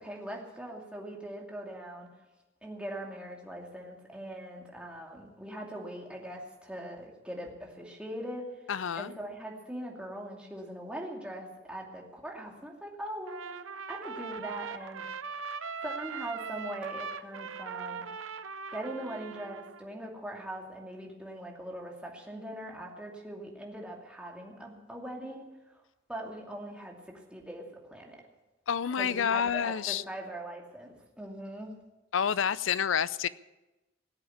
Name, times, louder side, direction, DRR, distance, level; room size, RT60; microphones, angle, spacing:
voice 1, 0.0-2.1 2.6-8.7 8.9-13.5 13.9-15.1 15.8-18.1 18.7-25.8 26.1-28.2 28.9-31.7, right 1 dB, 5° right, -1 dB, 2.5 m, -41 dB
voice 2, 8.7-9.1 28.7-30.0 32.1-33.3, left 7 dB, 75° left, 17 dB, 0.5 m, -28 dB
Trumpet, 13.3-19.9, right 5 dB, 80° right, 0.7 m, -40 dB
18.5 x 7.9 x 8.6 m, 1.1 s
head